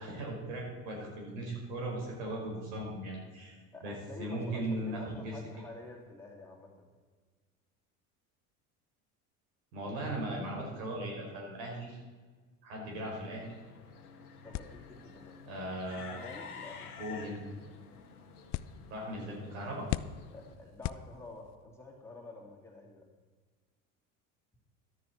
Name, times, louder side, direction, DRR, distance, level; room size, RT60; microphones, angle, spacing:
voice 1, 0.0-3.5 3.8-3.9 4.2-5.3 9.7-12.0 12.6-13.5 15.4-16.2 17.0-17.4 18.9-19.9, right 1 dB, 65° right, -1 dB, 5.0 m, -38 dB
voice 2, 3.7-6.9 14.4-15.4 15.9-16.9 20.3-23.1, left 2 dB, 5° left, -2 dB, 3.0 m, -49 dB
sound 1, 12.9-20.6, left 6 dB, 85° left, 1.5 m, -50 dB
sound 2, 14.5-21.6, left 14 dB, 40° left, 0.5 m, -43 dB
13.5 x 12.5 x 4.3 m, 1.4 s
hypercardioid pair, 70°, 44 cm